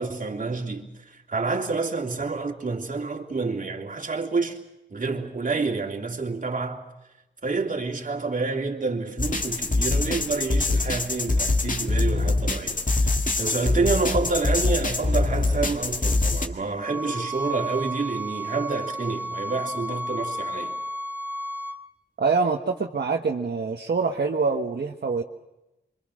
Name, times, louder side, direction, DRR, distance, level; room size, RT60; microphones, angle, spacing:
voice 1, 0.0-4.6 4.9-6.8 7.4-20.7, right 4 dB, 45° right, 2.9 m, -28 dB
sound 1, 9.2-16.5, left 2 dB, 45° left, 2.1 m, -24 dB
sound 2, 16.8-21.8, right 1 dB, 10° right, 2.5 m, -32 dB
voice 2, 22.2-25.2, right 4 dB, 60° right, 1.4 m, -25 dB
27.0 x 24.5 x 6.5 m
wide cardioid pair, 130°, 19 cm